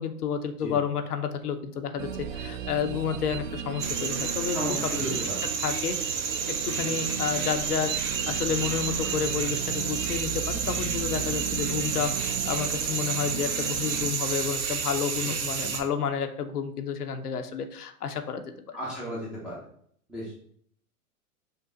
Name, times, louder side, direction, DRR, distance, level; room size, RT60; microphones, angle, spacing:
voice 1, 0.0-5.2 5.6-6.2 6.5-18.8, left 7 dB, 85° left, 7 dB, 0.7 m, -31 dB
sound 1, 2.0-14.1, right 8 dB, 60° right, 0.5 m, -36 dB
sound 2, 3.8-15.8, right 6 dB, 75° right, 0.9 m, -30 dB
voice 2, 4.5-5.4 15.2-15.4 18.7-19.6 20.1-20.4, equal, ahead, -8 dB, 0.3 m, -34 dB
5.3 x 2.2 x 3.7 m, 0.64 s
hypercardioid pair, 110°, 45 cm